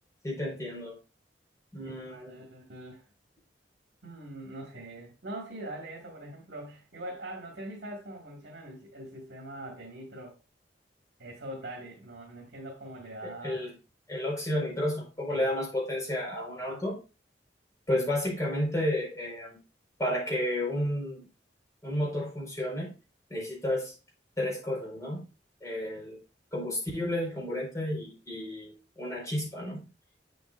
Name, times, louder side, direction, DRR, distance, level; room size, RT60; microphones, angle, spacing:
voice 1, 0.2-1.0 1.7-2.4 13.2-13.7 14.1-17.0 17.9-19.6 20.0-21.2 21.8-22.9 23.3-23.9 24.4-25.2 25.6-26.2 26.5-29.8, left 1 dB, 20° left, -4 dB, 4.8 m, -32 dB
voice 2, 1.8-3.0 4.0-10.4 11.2-13.6 15.3-15.5 16.6-16.8 17.9-18.0, right 1 dB, 75° right, -3 dB, 2.2 m, -43 dB
7.8 x 7.8 x 2.6 m, 0.32 s
head